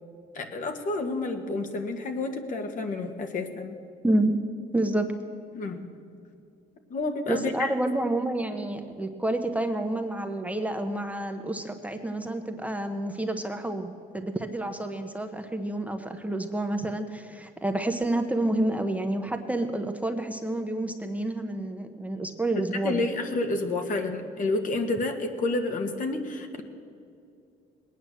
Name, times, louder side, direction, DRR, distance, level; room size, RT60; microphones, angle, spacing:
voice 1, 0.4-3.7 5.5-5.9 6.9-7.8 22.8-26.6, left 2 dB, 50° left, 5 dB, 1.7 m, -29 dB
voice 2, 4.0-4.4 4.7-5.1 7.3-23.1, right 1 dB, 10° right, 5 dB, 0.9 m, -29 dB
20.0 x 9.3 x 7.8 m, 2.4 s
cardioid pair, 110°, 17 cm